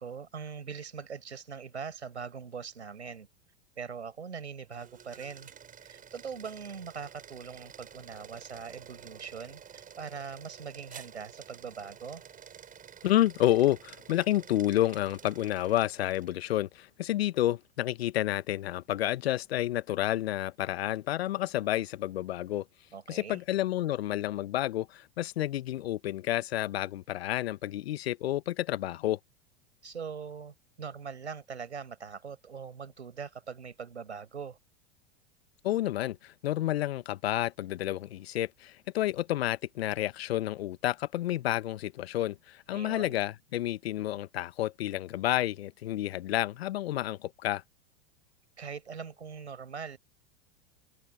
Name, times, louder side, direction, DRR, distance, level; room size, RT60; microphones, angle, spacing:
voice 1, 0.0-3.3 3.8-5.5 5.8-12.2 22.9-23.4 29.8-34.6 42.7-43.2 48.6-50.0, right 6 dB, 85° right, 5.1 m, -42 dB
sound 1, 4.6-16.4, right 8 dB, 25° right, 7.0 m, -51 dB
voice 2, 13.0-22.7 23.1-29.2 35.6-47.6, left 14 dB, 65° left, 1.2 m, -30 dB
hypercardioid pair, 95°, 33 cm